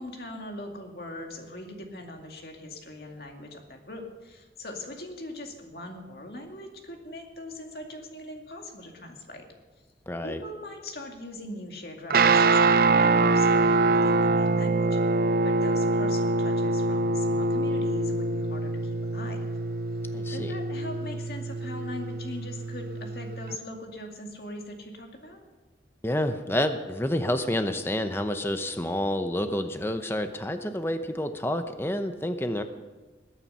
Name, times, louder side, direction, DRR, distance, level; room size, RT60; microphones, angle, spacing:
voice 1, 0.0-9.4 10.2-15.0 15.4-19.5 20.3-25.4, left 1 dB, 60° left, 2 dB, 2.2 m, -41 dB
voice 2, 10.1-10.4 20.1-20.5 26.0-32.6, left 1 dB, 15° left, 8 dB, 0.7 m, -29 dB
Guitar, 12.1-23.5, right 3 dB, 55° right, 0.5 m, -24 dB
20.0 x 8.9 x 5.6 m, 1.3 s
head